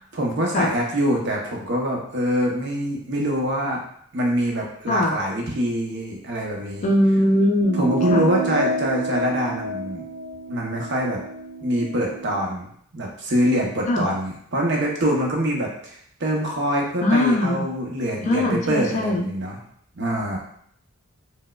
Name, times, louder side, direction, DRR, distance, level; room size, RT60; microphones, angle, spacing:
voice 1, 0.1-3.8 4.1-6.9 7.7-10.0 10.5-11.2 11.6-12.7 12.9-19.6 19.9-20.4, equal, 50° right, -1 dB, 0.7 m, -24 dB
voice 2, 4.9-5.2 6.8-8.3 13.9-14.1 17.0-17.7 18.3-19.3, left 1 dB, 30° left, 1 dB, 0.3 m, -21 dB
sound 1, 7.6-12.4, equal, 80° right, 0.9 m, -29 dB
4.4 x 2.1 x 2.3 m, 0.65 s
head